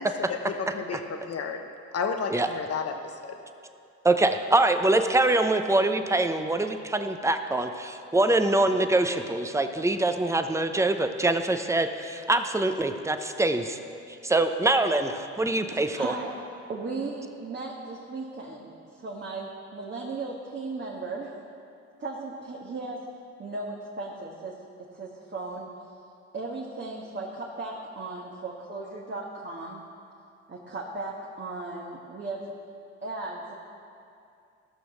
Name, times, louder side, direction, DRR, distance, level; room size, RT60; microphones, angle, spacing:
voice 1, 0.0-1.6 1.9-3.4, left 5 dB, 55° left, 5 dB, 1.2 m, -32 dB
voice 2, 4.0-13.8 14.2-16.1, right 2 dB, 10° right, 7 dB, 0.7 m, -24 dB
voice 3, 15.9-16.4 16.7-21.3 22.0-23.0 23.4-24.5 24.9-25.7 26.3-29.8 30.5-32.5 33.0-33.5, right 3 dB, 40° right, -3 dB, 1.6 m, -36 dB
15.0 x 6.2 x 6.2 m, 2.5 s
cardioid pair, 90°, 30 cm